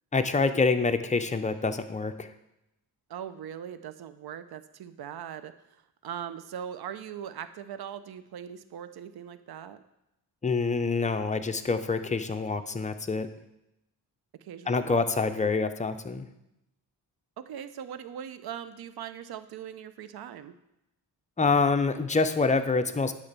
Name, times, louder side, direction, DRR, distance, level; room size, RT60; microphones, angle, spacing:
voice 1, 0.1-2.3 10.4-13.3 14.7-16.3 21.4-23.1, left 4 dB, 20° left, 7 dB, 0.6 m, -26 dB
voice 2, 3.1-9.8 14.4-15.0 15.3-15.5 17.4-20.6, right 9 dB, 65° right, 12 dB, 0.7 m, -40 dB
9.7 x 3.3 x 6.8 m, 0.88 s
cardioid pair, 70°, 40 cm